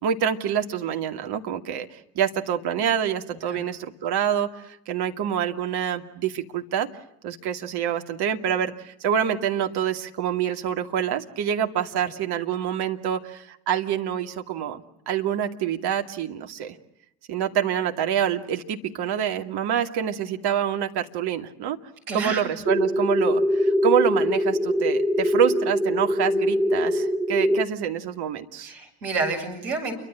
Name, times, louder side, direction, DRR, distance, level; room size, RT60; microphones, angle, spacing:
voice 1, 0.0-6.9 7.2-16.8 17.3-21.8 22.1-28.7, right 9 dB, 55° right, 6 dB, 2.5 m, -26 dB
voice 2, 22.1-22.6 28.6-29.9, right 3 dB, 75° right, 3 dB, 7.8 m, -29 dB
sound 1, 22.6-27.6, equal, 5° right, 1.1 m, -23 dB
29.5 x 24.0 x 7.7 m, 0.79 s
figure-of-eight pair, 55°, 46 cm